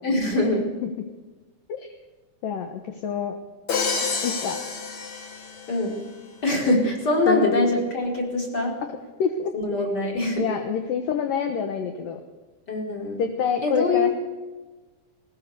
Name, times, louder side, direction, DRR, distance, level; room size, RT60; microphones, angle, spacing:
voice 1, 0.0-0.7 5.7-6.0 6.4-8.8 9.5-10.5 12.7-13.2 13.6-14.1, left 2 dB, 25° left, 0 dB, 4.9 m, -23 dB
voice 2, 2.4-3.4 4.2-4.6 7.3-7.5 9.2-9.5 10.4-12.2 13.2-14.1, left 6 dB, 65° left, 6 dB, 2.7 m, -26 dB
Crash cymbal, 3.7-5.9, left 5 dB, 50° left, 3.4 m, -29 dB
20.0 x 20.0 x 6.8 m, 1.2 s
omnidirectional pair, 4.6 m